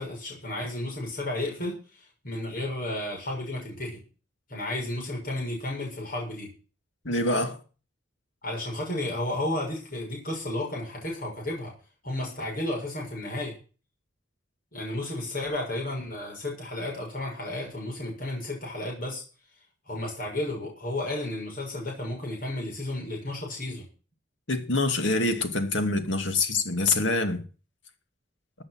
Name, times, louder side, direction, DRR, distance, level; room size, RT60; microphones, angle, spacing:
voice 1, 0.0-4.0 4.5-6.5 8.4-11.7 12.0-13.5 14.7-19.2 19.8-23.9, left 1 dB, 45° left, 6.8 m, -33 dB
voice 2, 7.0-7.6 24.5-27.4, left 2 dB, 70° left, 2.4 m, -25 dB
14.5 x 8.8 x 6.2 m
head